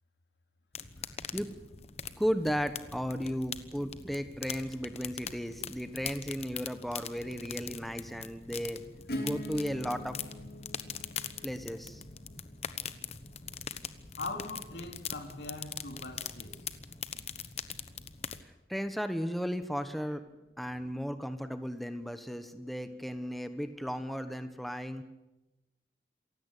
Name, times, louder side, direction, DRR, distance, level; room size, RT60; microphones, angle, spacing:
sound 1, 0.7-18.4, left 7 dB, 35° left, 1.1 m, -42 dB
voice 1, 2.2-8.8 9.2-10.2 11.4-12.0 18.4-20.2 20.6-25.0, equal, ahead, 1.2 m, -35 dB
Acoustic guitar / Strum, 9.1-14.6, equal, 60° left, 3.1 m, -44 dB
voice 2, 14.2-16.6, left 2 dB, 80° left, 3.5 m, -41 dB
27.5 x 16.0 x 8.4 m
head